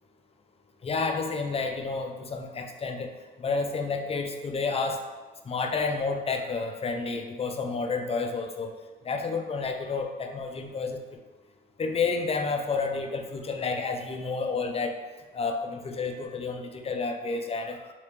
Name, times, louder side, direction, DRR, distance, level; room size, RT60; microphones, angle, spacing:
voice 1, 0.8-3.1 3.4-5.0 5.5-8.7 9.0-11.2 11.8-15.0 15.3-17.8, left 4 dB, 30° left, 4 dB, 0.4 m, -30 dB
3.1 x 2.8 x 3.2 m, 1.3 s
cardioid pair, 90°, 20 cm